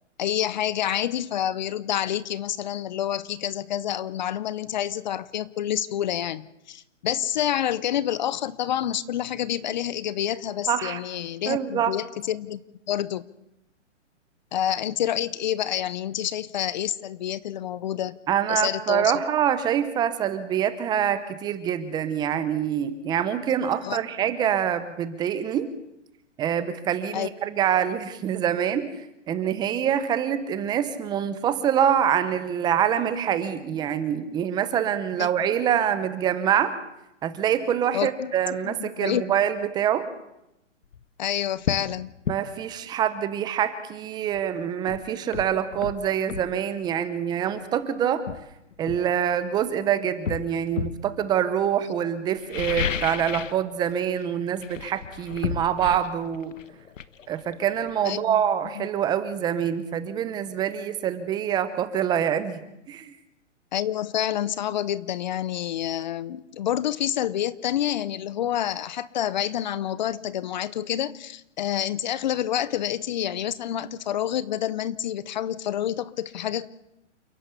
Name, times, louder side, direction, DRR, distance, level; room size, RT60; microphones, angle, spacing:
voice 1, 0.2-12.6 12.9-13.2 14.5-18.2 18.5-19.1 23.8-24.0 27.1-27.3 35.2-35.3 37.9-38.3 38.6-39.2 41.2-42.1 58.0-58.4 58.8-58.9 63.7-76.7, left 11 dB, 35° left, 18 dB, 0.7 m, -28 dB
voice 2, 10.7-11.0 11.5-11.9 18.3-25.7 26.4-28.9 29.3-36.7 37.2-40.0 42.3-48.2 48.8-56.5 57.3-62.6 62.9-63.1, right 9 dB, 10° right, 12 dB, 0.8 m, -25 dB
sound 1, 40.8-41.0 41.6-41.9 42.2-42.4 44.3-44.4 44.9-46.5 47.6-47.7 48.3-49.7 50.2-51.1 52.3-53.6 53.9-54.2 54.6-58.1 58.4-58.5, left 7 dB, 90° left, 1.3 m, -32 dB
29.0 x 11.0 x 8.3 m, 0.87 s
hypercardioid pair, 155°, 37 cm